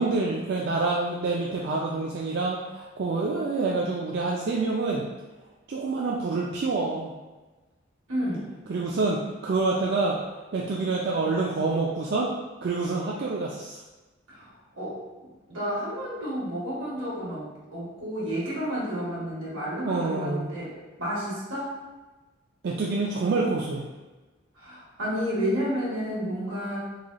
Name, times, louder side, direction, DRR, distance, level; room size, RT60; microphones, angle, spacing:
voice 1, 0.0-5.0 5.7-7.1 8.7-10.2 10.5-12.3 12.6-13.8 19.8-20.5 22.6-23.9, right 3 dB, 55° right, -3 dB, 0.3 m, -27 dB
voice 2, 8.1-8.5 14.3-15.1 15.5-21.7 24.5-26.8, equal, 80° right, -7 dB, 1.4 m, -31 dB
3.6 x 3.2 x 2.2 m, 1.2 s
head